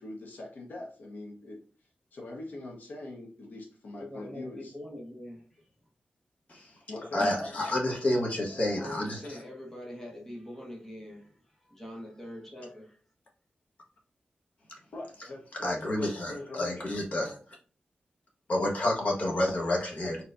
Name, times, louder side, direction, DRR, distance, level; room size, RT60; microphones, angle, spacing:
voice 1, 0.0-1.6 2.1-4.7 6.9-7.5 14.9-16.9, left 2 dB, 65° left, 1.2 m, -42 dB
voice 2, 3.9-5.6 7.6-11.3 11.7-13.0, left 1 dB, 10° left, 1.3 m, -44 dB
voice 3, 7.1-9.4 15.6-17.4 18.5-20.2, left 1 dB, 50° left, 1.4 m, -29 dB
4.4 x 4.1 x 2.6 m
wide cardioid pair, 175°, 3 cm